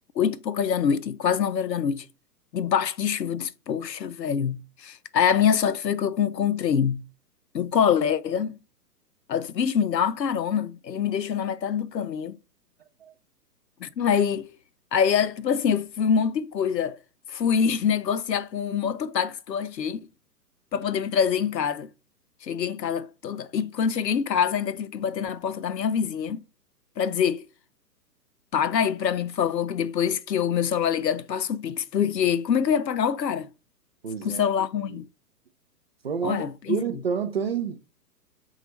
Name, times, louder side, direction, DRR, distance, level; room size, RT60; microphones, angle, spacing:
voice 1, 0.2-2.1 2.5-7.0 7.5-8.6 9.3-12.4 13.8-14.5 14.9-17.0 17.3-20.0 20.7-21.9 22.4-26.4 27.0-27.4 28.5-33.5 34.2-35.1 36.2-36.8, left 7 dB, 80° left, 0.6 m, -25 dB
voice 2, 34.0-34.5 34.9-35.0 36.0-37.8, right 7 dB, 40° right, 0.4 m, -29 dB
5.7 x 2.4 x 3.0 m
figure-of-eight pair, 120°, 49 cm